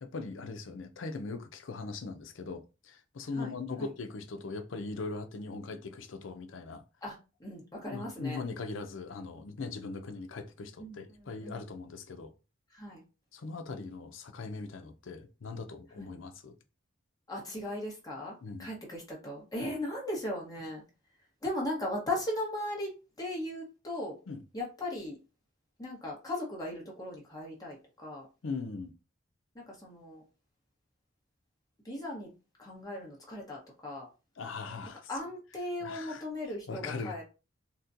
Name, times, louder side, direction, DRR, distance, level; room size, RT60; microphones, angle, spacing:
voice 1, 0.0-6.8 7.9-12.3 13.3-16.6 18.4-18.7 24.3-24.4 28.4-28.9 34.4-35.1 35.8-36.3 36.7-37.2, left 3 dB, 75° left, 0.5 m, -40 dB
voice 2, 7.0-8.4 10.8-11.6 12.7-13.0 16.0-16.1 17.3-20.8 21.4-24.2 24.5-25.2 25.8-28.3 29.5-30.2 31.8-32.3 32.6-34.1 35.1-37.2, left 1 dB, 20° left, 1.0 m, -38 dB
4.0 x 2.2 x 2.6 m
head